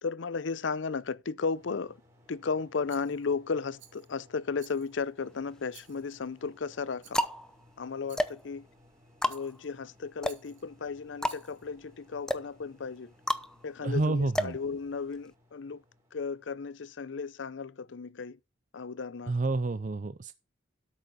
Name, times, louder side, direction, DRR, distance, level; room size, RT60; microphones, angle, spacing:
voice 1, 0.0-2.0 2.3-7.2 7.8-8.7 9.2-13.1 13.6-15.8 16.1-18.4 18.7-19.3, left 5 dB, 85° left, 0.6 m, -35 dB
sound 1, 1.5-16.7, left 1 dB, 15° right, 3.6 m, -62 dB
Rattle, 2.9-3.4 3.8-4.2 4.6-5.1 5.7-6.3 7.0-7.3 8.1-8.5 9.3-9.7 10.2-10.7 11.2-11.7, right 11 dB, 85° right, 2.6 m, -56 dB
sound 2, 5.2-5.9 6.6-15.3, equal, 5° left, 0.8 m, -34 dB
voice 2, 13.8-14.6 19.3-20.3, right 2 dB, 45° right, 0.5 m, -29 dB
12.5 x 6.7 x 5.1 m
head